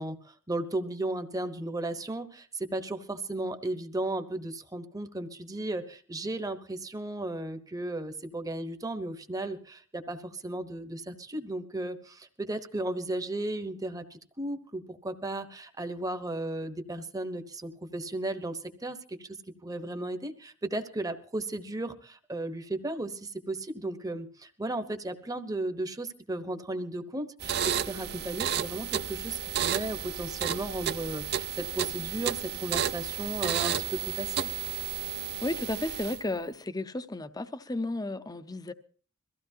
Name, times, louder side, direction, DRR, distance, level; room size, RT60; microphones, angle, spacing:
voice 1, 0.0-34.5, right 2 dB, 15° right, 1.0 m, -35 dB
sound 1, 27.4-36.3, right 9 dB, 50° right, 0.6 m, -32 dB
voice 2, 35.4-38.7, left 2 dB, 20° left, 0.6 m, -33 dB
22.5 x 15.0 x 2.8 m
head